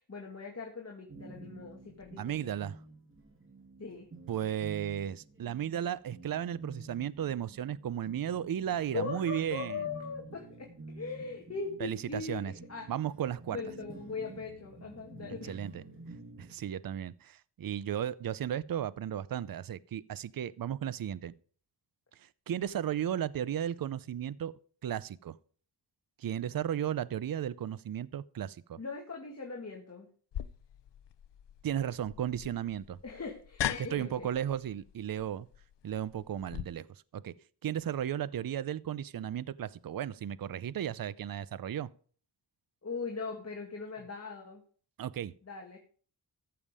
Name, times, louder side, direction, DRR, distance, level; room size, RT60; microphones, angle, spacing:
voice 1, 0.0-2.6 3.8-4.1 8.9-12.9 13.5-15.6 28.8-30.1 33.0-34.3 42.8-44.6 45.4-45.8, left 4 dB, 35° left, 2.1 m, -40 dB
sound 1, 1.1-16.5, right 2 dB, 30° right, 2.5 m, -50 dB
voice 2, 2.2-2.8 4.3-9.8 11.8-12.5 12.9-13.6 15.4-15.8 16.4-21.3 22.2-24.5 24.8-25.4 26.2-28.8 31.6-33.0 33.8-35.5 35.8-37.3 37.6-41.9 45.0-45.3, right 10 dB, 55° right, 0.6 m, -35 dB
sound 2, 30.3-36.6, left 11 dB, 80° left, 0.7 m, -40 dB
14.5 x 7.1 x 4.9 m
wide cardioid pair, 85°, 42 cm